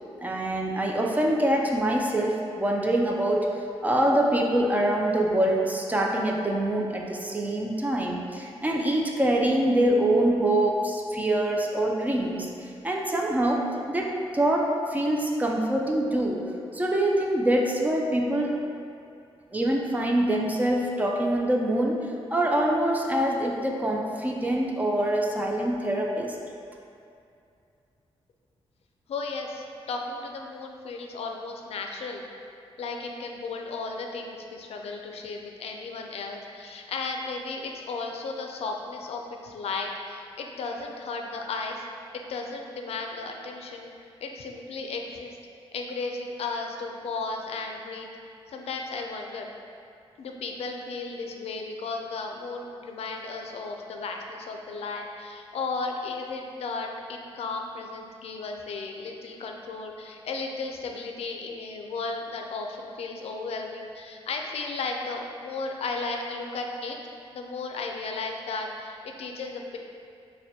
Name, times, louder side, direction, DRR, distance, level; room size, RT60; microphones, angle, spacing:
voice 1, 0.2-3.5 3.8-12.5 12.8-16.4 16.7-18.6 19.5-26.4, right 1 dB, 15° right, 0 dB, 0.3 m, -25 dB
voice 2, 29.1-32.2 32.8-41.8 42.1-43.9 44.2-45.4 45.7-48.1 48.5-49.5 50.2-67.0 67.3-69.8, left 3 dB, 75° left, 2 dB, 0.4 m, -34 dB
6.4 x 2.2 x 2.8 m, 2.5 s
wide cardioid pair, 160°, 10 cm